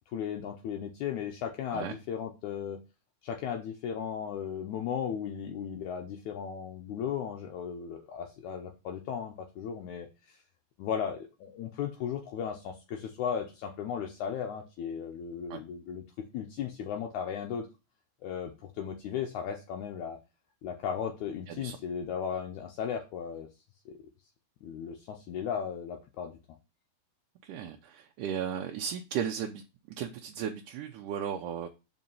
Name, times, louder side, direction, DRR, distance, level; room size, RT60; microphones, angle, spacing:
voice 1, 0.1-2.8 3.2-10.4 10.8-16.0 16.3-17.7 18.2-20.2 20.6-23.5 23.9-24.0 24.6-26.4, left 8 dB, 75° left, 2.1 m, -36 dB
voice 2, 21.5-21.8 27.4-29.6 30.0-31.7, right 8 dB, 80° right, 2.2 m, -35 dB
5.5 x 5.1 x 5.5 m
omnidirectional pair, 3.7 m